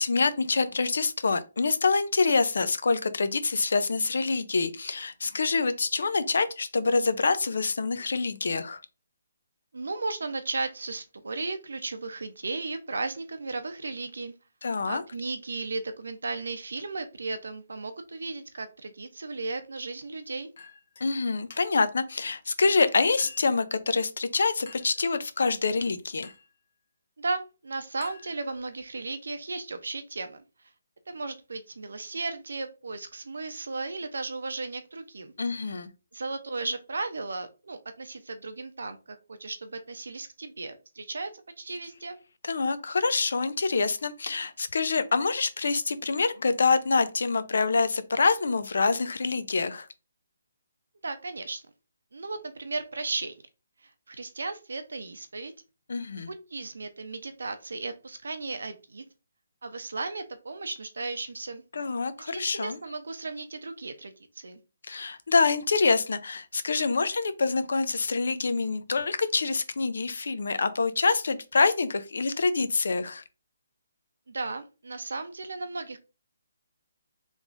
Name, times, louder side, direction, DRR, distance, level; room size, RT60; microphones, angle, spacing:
voice 1, 0.0-8.8 14.6-15.0 21.0-26.3 35.4-35.9 42.5-49.9 55.9-56.3 61.7-62.8 64.9-73.2, left 4 dB, 70° left, 0.5 m, -26 dB
voice 2, 9.7-14.3 14.9-20.5 27.2-30.4 31.1-35.3 36.1-42.2 51.0-51.6 52.1-53.3 53.8-55.5 56.1-59.0 59.6-61.6 62.2-64.6 74.3-76.0, right 3 dB, 85° right, 0.7 m, -35 dB
Chink clink, 20.6-21.1 21.5-21.9 22.6-23.6 24.7-25.0 26.2-26.6 28.0-28.8, left 4 dB, 50° left, 1.0 m, -50 dB
3.6 x 3.2 x 2.5 m
hypercardioid pair, 170°, 0 cm